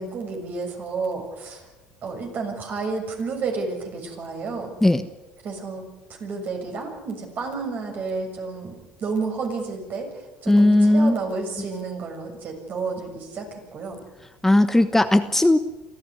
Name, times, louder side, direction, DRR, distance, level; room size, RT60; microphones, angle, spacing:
voice 1, 0.0-1.6 2.0-4.7 5.4-5.8 6.2-10.1 10.4-14.0, right 4 dB, 50° right, 3 dB, 6.9 m, -31 dB
voice 2, 10.5-11.1 14.4-15.6, left 1 dB, 10° left, 9 dB, 1.1 m, -17 dB
24.5 x 15.0 x 9.9 m, 1.1 s
supercardioid pair, 85°, 4 cm